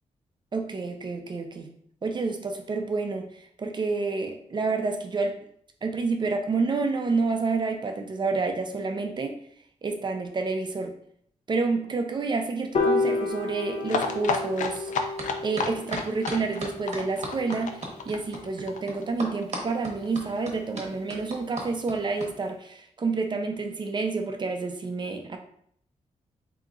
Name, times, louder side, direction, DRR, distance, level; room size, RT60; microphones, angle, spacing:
voice 1, 0.5-1.7 2.0-3.3 3.6-5.4 5.8-9.4 9.8-10.9 11.5-14.9 15.4-25.4, right 4 dB, 40° right, 5 dB, 0.5 m, -29 dB
Piano, 12.7-19.1, left 3 dB, 60° left, 0.9 m, -32 dB
sound 1, 13.9-19.4 19.7-19.8 20.0-20.1 20.4-20.5, left 4 dB, 90° left, 0.5 m, -31 dB
sound 2, 15.2-15.3 15.6-22.3, right 2 dB, 60° right, 0.9 m, -36 dB
3.6 x 2.8 x 3.8 m, 0.67 s
wide cardioid pair, 110°, 13 cm